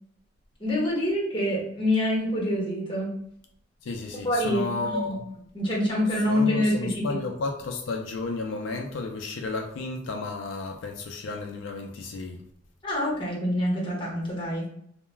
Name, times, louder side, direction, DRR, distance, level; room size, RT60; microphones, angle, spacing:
voice 1, 0.6-3.1 4.2-5.2 5.5-7.0 12.8-14.7, left 1 dB, 25° left, 1.0 m, -26 dB
voice 2, 3.8-5.2 6.3-12.4, left 3 dB, 85° left, 0.4 m, -32 dB
2.2 x 2.1 x 3.1 m
head